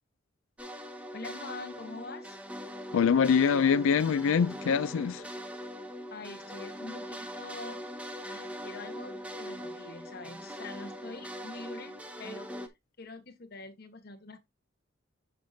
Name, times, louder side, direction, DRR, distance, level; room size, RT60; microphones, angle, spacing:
sound 1, 0.6-12.7, equal, 5° right, 0.9 m, -41 dB
voice 1, 1.1-2.4 6.1-7.8 8.2-12.5 13.0-14.5, left 3 dB, 50° left, 1.3 m, -45 dB
voice 2, 2.9-5.2, left 6 dB, 75° left, 0.4 m, -24 dB
7.7 x 6.5 x 2.7 m
head